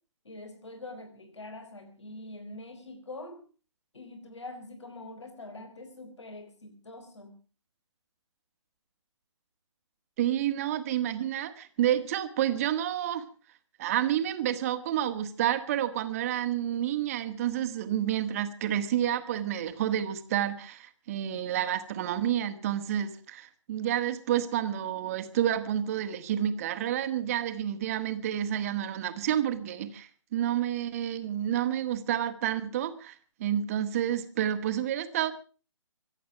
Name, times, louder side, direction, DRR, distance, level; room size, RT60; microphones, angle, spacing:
voice 1, 0.2-3.4 3.9-7.3, left 2 dB, 65° left, 7 dB, 4.1 m, -44 dB
voice 2, 10.2-13.3 13.8-33.2 33.4-35.3, right 11 dB, 30° right, 9 dB, 1.6 m, -29 dB
24.5 x 8.5 x 6.0 m, 0.39 s
figure-of-eight pair, 145°, 16 cm